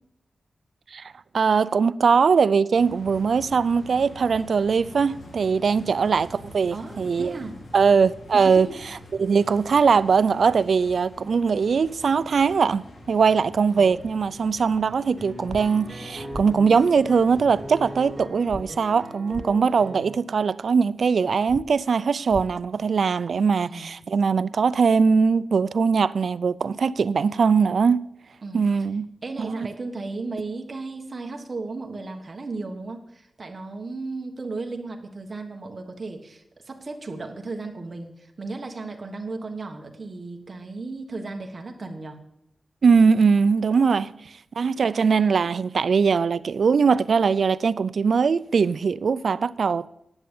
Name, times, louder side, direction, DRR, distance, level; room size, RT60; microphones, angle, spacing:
voice 1, 0.9-7.4 7.7-8.7 9.2-28.0 28.5-29.1 29.4-29.7 42.8-44.1 44.6-49.9, right 5 dB, 70° right, 0.4 m, -21 dB
sound 1, 2.7-18.3, left 1 dB, 80° left, 2.5 m, -45 dB
voice 2, 6.7-7.6 8.3-8.8 13.7-14.0 23.6-24.0 28.4-28.6 29.2-42.2 44.0-44.2, right 3 dB, 40° right, 1.4 m, -35 dB
sound 2, 15.2-20.2, equal, 10° right, 3.3 m, -39 dB
sound 3, 15.5-15.6 16.3-16.4 18.5-18.6 19.3-19.5 21.5-21.6 22.3-22.4, left 1 dB, 10° left, 0.4 m, -35 dB
10.5 x 7.9 x 7.1 m
wide cardioid pair, 170°, 0 cm